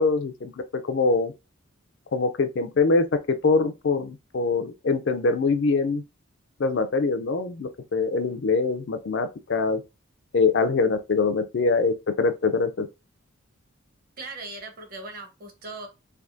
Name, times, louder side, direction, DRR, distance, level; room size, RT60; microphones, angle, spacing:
voice 1, 0.0-1.3 2.1-6.0 6.6-9.8 10.3-12.9, left 4 dB, 55° left, 0.4 m, -23 dB
voice 2, 14.2-15.9, right 3 dB, 45° right, 0.9 m, -39 dB
3.4 x 3.0 x 2.5 m
head